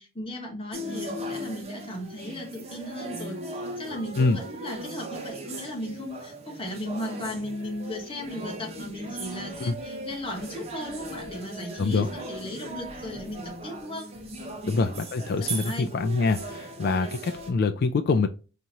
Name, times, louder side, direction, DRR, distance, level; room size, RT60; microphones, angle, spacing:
voice 1, 0.0-14.1 14.6-14.8 15.4-15.9, left 1 dB, 25° left, 1 dB, 1.1 m, -36 dB
sound 1, 0.7-17.5, right 1 dB, 30° right, 0.9 m, -38 dB
voice 2, 11.8-12.1 14.7-18.3, left 4 dB, 45° left, 7 dB, 0.3 m, -25 dB
4.8 x 2.9 x 2.7 m, 0.33 s
head